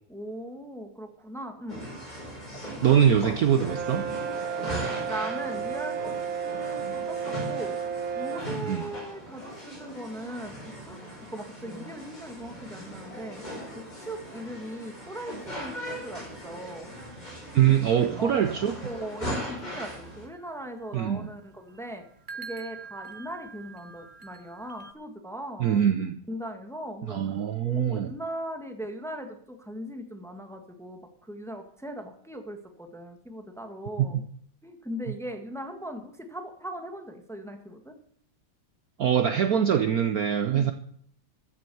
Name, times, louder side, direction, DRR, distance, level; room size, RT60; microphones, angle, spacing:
voice 1, 0.1-1.9 5.0-6.2 6.4-7.8 8.2-10.6 10.9-11.0 11.3-13.4 13.7-16.9 17.8-18.3 18.8-22.0 22.3-25.8 26.3-34.2 34.6-38.0 40.5-40.7, equal, ahead, 5 dB, 1.4 m, -39 dB
sound 1, 1.7-20.3, equal, 20° left, 5.3 m, -39 dB
voice 2, 2.8-4.1 8.6-8.8 17.5-18.7 20.9-21.3 25.6-26.2 27.1-28.1 34.0-34.1 39.0-40.7, right 9 dB, 60° right, 9 dB, 1.0 m, -23 dB
Brass instrument, 3.7-8.6, right 7 dB, 90° right, 1.8 m, -32 dB
sound 2, 18.3-24.9, right 5 dB, 35° right, 0.9 m, -47 dB
14.0 x 7.6 x 7.0 m, 0.63 s
omnidirectional pair, 2.1 m